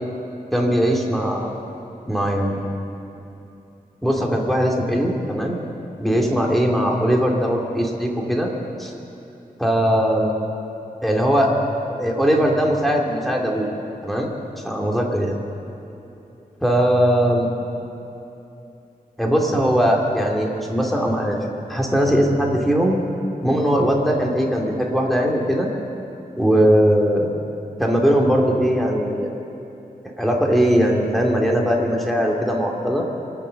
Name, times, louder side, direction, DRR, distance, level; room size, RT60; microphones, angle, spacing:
voice 1, 0.5-1.5 2.1-2.7 4.0-5.6 6.0-8.5 8.8-8.9 9.6-10.3 11.0-11.5 11.9-13.7 14.0-14.3 14.6-15.3 16.6-17.5 19.2-21.4 21.7-23.0 23.4-25.7 26.4-27.3 27.8-29.3 30.2-33.0, equal, ahead, -1 dB, 2.6 m, -20 dB
24.0 x 8.3 x 6.5 m, 2.8 s
wide cardioid pair, 70°, 16 cm